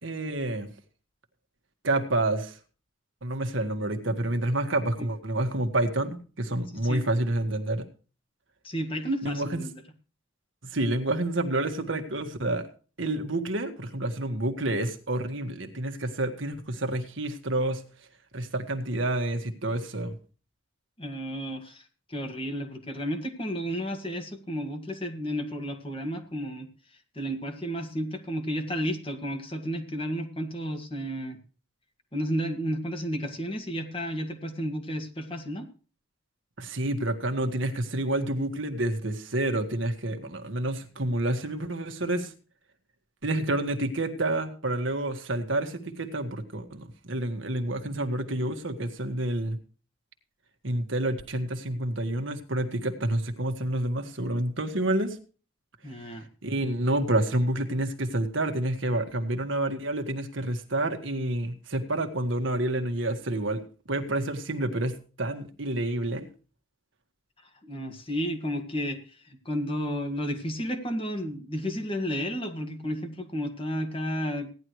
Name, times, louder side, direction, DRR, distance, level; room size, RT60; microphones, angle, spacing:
voice 1, 0.0-0.7 1.8-2.6 3.2-7.9 9.2-9.6 10.6-12.7 13.0-17.8 18.3-20.1 36.6-42.3 43.2-49.6 50.6-55.2 56.4-66.3, right 1 dB, 70° right, 6 dB, 1.7 m, -29 dB
voice 2, 8.6-9.7 21.0-21.8 22.1-26.7 27.2-31.4 32.1-35.7 55.8-56.2 67.6-69.0 69.5-74.5, equal, 25° left, 6 dB, 1.9 m, -32 dB
16.5 x 11.0 x 3.2 m, 0.37 s
head